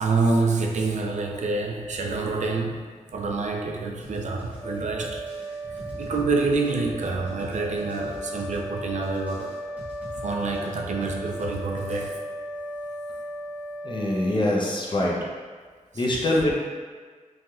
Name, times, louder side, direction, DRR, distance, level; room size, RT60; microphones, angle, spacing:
voice 1, 0.0-2.8 3.1-5.2 6.0-9.6 10.2-12.3 15.9-16.0, right 3 dB, 65° right, 1 dB, 0.4 m, -27 dB
sound 1, 4.0-12.0, left 1 dB, 10° right, 1.0 m, -42 dB
sound 2, 4.5-15.1, right 1 dB, 85° left, 0.8 m, -37 dB
voice 2, 13.8-15.2 15.9-16.6, left 1 dB, 40° left, -3 dB, 0.6 m, -24 dB
3.2 x 2.6 x 2.3 m, 1.5 s
wide cardioid pair, 85°, 13 cm